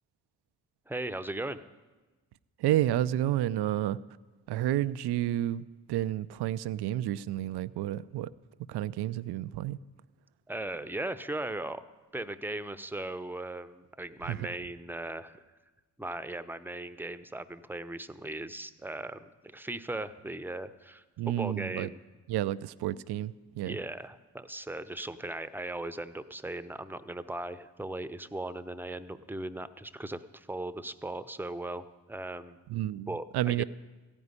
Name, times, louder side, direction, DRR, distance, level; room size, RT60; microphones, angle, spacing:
voice 1, 0.9-1.7 10.5-11.8 12.1-15.4 16.0-21.0 21.4-22.0 23.6-32.6 33.1-33.6, right 2 dB, 5° right, 11 dB, 0.7 m, -38 dB
voice 2, 2.6-4.0 4.5-8.3 8.7-9.8 14.3-14.5 21.2-21.9 22.3-23.8 32.7-33.6, right 13 dB, 70° right, 15 dB, 0.5 m, -30 dB
14.5 x 5.4 x 9.7 m, 1.2 s
supercardioid pair, 45°, 42 cm